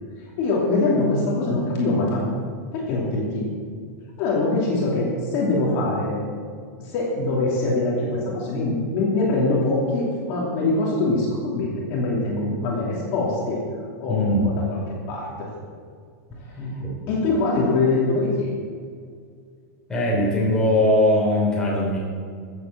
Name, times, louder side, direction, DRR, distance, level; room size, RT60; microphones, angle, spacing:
voice 1, 0.4-2.2 2.7-3.5 4.2-6.2 6.8-13.6 14.0-14.8 15.1-15.3 16.5-16.7 17.1-18.5, left 2 dB, 35° left, -4 dB, 2.8 m, -23 dB
voice 2, 14.1-14.5 16.6-17.2 19.9-22.0, left 1 dB, 5° left, -5 dB, 3.2 m, -21 dB
14.5 x 7.8 x 7.4 m, 2.1 s
supercardioid pair, 175°, 9 cm